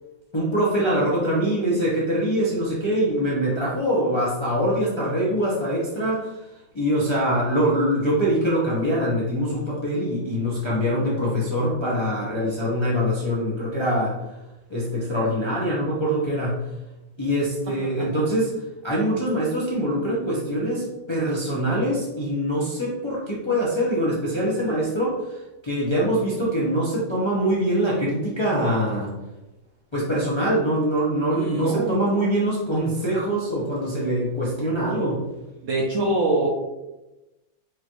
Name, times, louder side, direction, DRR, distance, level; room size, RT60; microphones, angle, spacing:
voice 1, 0.3-6.3 6.7-14.2 14.7-16.6 17.2-18.5 18.8-25.4 25.6-29.1 29.9-35.2, equal, 25° left, -7 dB, 0.6 m, -23 dB
voice 2, 31.3-32.0 35.6-36.5, right 2 dB, 65° right, -2 dB, 0.8 m, -24 dB
4.8 x 2.5 x 2.9 m, 1.0 s
omnidirectional pair, 1.8 m